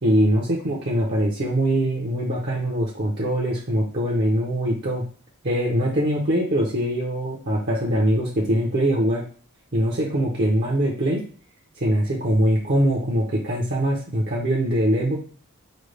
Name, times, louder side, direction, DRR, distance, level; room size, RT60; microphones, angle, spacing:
voice 1, 0.0-5.0 5.4-9.2 9.7-11.2 11.8-15.2, right 1 dB, 50° right, -3 dB, 0.8 m, -22 dB
5.2 x 2.3 x 3.3 m, 0.43 s
head